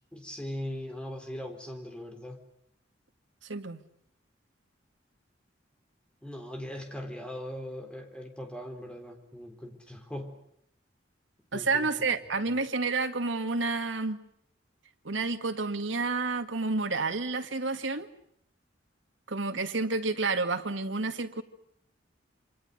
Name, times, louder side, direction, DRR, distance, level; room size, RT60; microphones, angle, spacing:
voice 1, 0.1-2.4 6.2-10.3 11.5-11.9, left 1 dB, 5° left, 3.8 m, -40 dB
voice 2, 3.5-3.8 11.5-14.2 15.0-18.1 19.3-21.4, right 3 dB, 85° right, 2.0 m, -30 dB
27.5 x 25.0 x 6.6 m
head